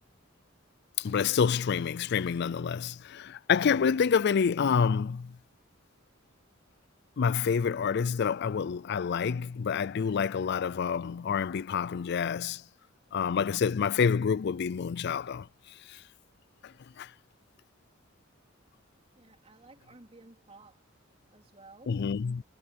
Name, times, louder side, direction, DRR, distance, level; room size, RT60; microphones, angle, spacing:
sound 1, 1.0-4.0 4.4-4.6, left 5 dB, 80° left, 3.9 m, -62 dB
voice 1, 1.0-5.4 7.2-12.6 13.1-15.5 15.9-16.0 16.6-17.1 21.9-22.4, left 6 dB, 60° left, 0.4 m, -28 dB
voice 2, 19.2-20.9 21.3-22.0, right 2 dB, 30° right, 3.6 m, -54 dB
head